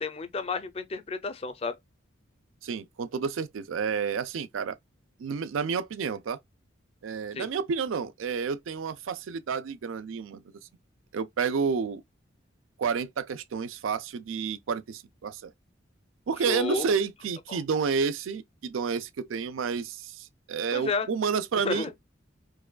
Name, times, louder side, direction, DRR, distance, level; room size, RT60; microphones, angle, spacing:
voice 1, 0.0-1.8 7.3-7.5 16.5-16.9 17.5-17.6 20.7-21.1 21.6-21.9, left 4 dB, 30° left, 0.4 m, -31 dB
voice 2, 2.6-4.8 5.2-6.4 7.0-10.4 11.1-12.0 12.8-15.5 16.3-21.9, right 6 dB, 90° right, 0.4 m, -30 dB
4.7 x 2.2 x 2.2 m
head